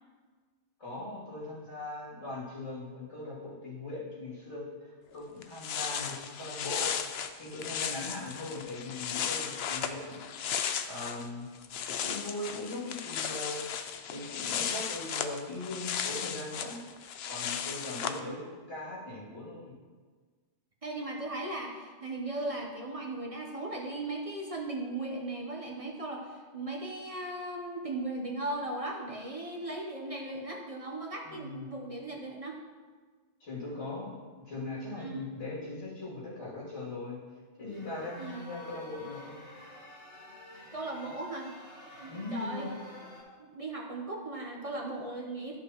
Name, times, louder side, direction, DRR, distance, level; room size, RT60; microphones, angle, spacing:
voice 1, 0.8-7.0 7.4-10.3 10.9-11.4 12.0-13.6 14.1-16.8 17.3-18.4 18.7-19.7 31.2-31.6 33.4-37.2 37.6-39.4 42.1-42.7, left 2 dB, 90° left, -8 dB, 3.1 m, -40 dB
sound 1, 5.1-5.2 5.4-11.3 11.5-18.2, left 8 dB, 70° left, 0.8 m, -35 dB
voice 2, 18.0-18.4 20.8-32.6 34.9-35.2 38.2-38.5 40.7-41.5 42.0-42.7 43.4-45.6, right 2 dB, 35° right, 0 dB, 0.9 m, -37 dB
sound 2, 37.7-43.2, left 1 dB, 55° left, 2.9 m, -50 dB
12.5 x 5.8 x 3.0 m, 1.5 s
omnidirectional pair, 1.2 m